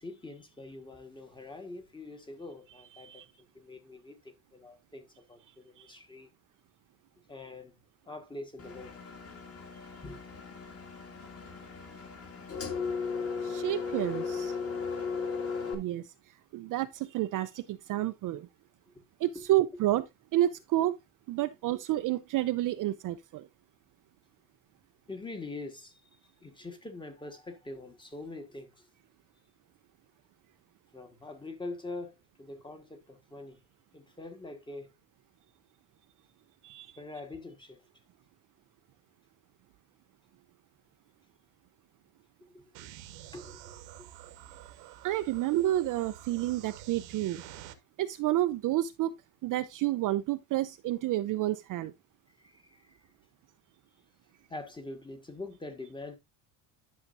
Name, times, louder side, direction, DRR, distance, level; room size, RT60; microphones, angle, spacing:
voice 1, 0.0-3.3 3.5-6.3 7.3-7.7 8.0-9.0 10.0-10.2 19.3-19.4 21.4-21.5 25.1-26.0 26.4-28.9 30.9-33.6 33.9-34.9 37.0-37.8 42.4-42.8 43.3-44.1 52.4-53.0 54.5-56.2, left 2 dB, 10° left, 1.3 m, -44 dB
voice 2, 2.9-3.3 5.8-5.9 13.4-14.6 15.7-16.1 16.5-18.5 19.2-20.0 20.3-21.0 21.3-23.5 36.6-37.0 45.0-47.4 48.0-49.1 49.4-51.9, right 14 dB, 45° right, 0.5 m, -30 dB
Engine, 8.6-15.7, left 5 dB, 30° left, 2.0 m, -36 dB
sound 1, 42.7-47.7, right 12 dB, 80° right, 1.3 m, -48 dB
11.0 x 6.5 x 2.5 m
cardioid pair, 160°, 45 cm